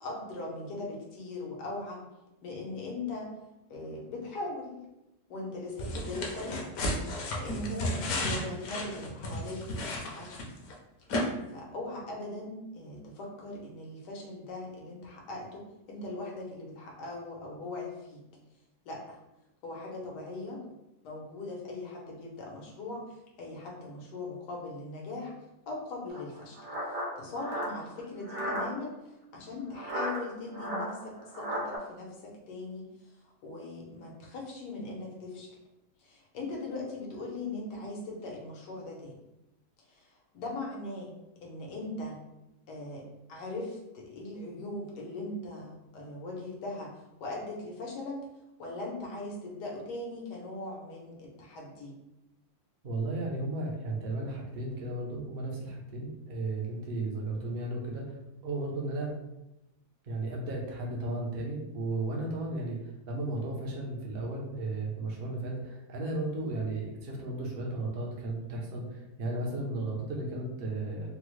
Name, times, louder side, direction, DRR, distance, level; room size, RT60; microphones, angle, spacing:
voice 1, 0.0-2.0 2.4-3.3 3.7-4.9 5.3-6.7 7.4-10.4 11.5-18.2 18.8-19.2 19.6-20.6 21.0-23.0 23.4-25.3 25.7-26.6 27.2-28.9 29.3-32.9 33.2-35.5 36.0-39.1 39.9-41.1 41.4-42.2 42.7-43.0 43.3-46.9 47.2-48.2 48.6-51.9, left 2 dB, 90° left, -2 dB, 1.4 m, -40 dB
sound 1, 5.8-10.7 11.1-11.2, left 1 dB, 65° left, 1.0 m, -33 dB
sound 2, 26.1-28.7 29.7-31.8, equal, 80° right, 1.4 m, -35 dB
voice 2, 52.8-59.1 60.0-71.1, right 2 dB, 55° right, -1 dB, 0.6 m, -34 dB
3.6 x 2.0 x 3.0 m, 0.93 s
omnidirectional pair, 1.7 m